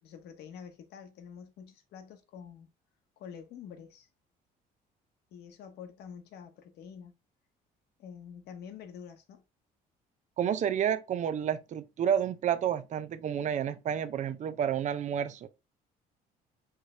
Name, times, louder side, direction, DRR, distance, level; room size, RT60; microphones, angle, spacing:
voice 1, 0.0-2.7 3.2-4.1 5.3-7.1 8.0-9.4, left 7 dB, 75° left, 1.1 m, -47 dB
voice 2, 10.4-15.5, right 9 dB, 45° right, 0.5 m, -30 dB
4.5 x 3.3 x 3.2 m
cardioid pair, 110°, 17 cm